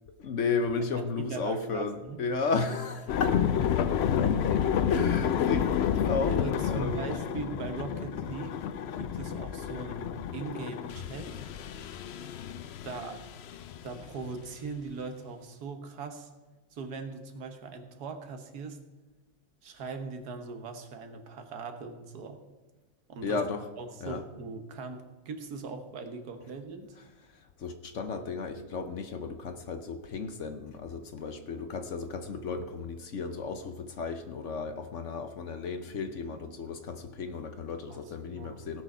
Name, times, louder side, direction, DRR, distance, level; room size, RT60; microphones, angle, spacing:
voice 1, 0.2-3.4 4.1-4.6 4.9-7.1 23.2-23.7 24.0-24.2 27.3-38.8, left 4 dB, 55° left, 8 dB, 1.0 m, -34 dB
voice 2, 1.0-2.2 4.5-4.6 6.3-8.6 9.0-11.3 12.8-13.2 13.8-16.3 16.7-18.8 19.6-22.4 23.1-23.4 23.8-26.9 37.9-38.6, right 4 dB, 75° right, 7 dB, 1.6 m, -40 dB
sound 1, 3.1-14.6, left 8 dB, 80° left, 0.5 m, -30 dB
17.0 x 6.3 x 5.5 m, 1.2 s
omnidirectional pair, 1.7 m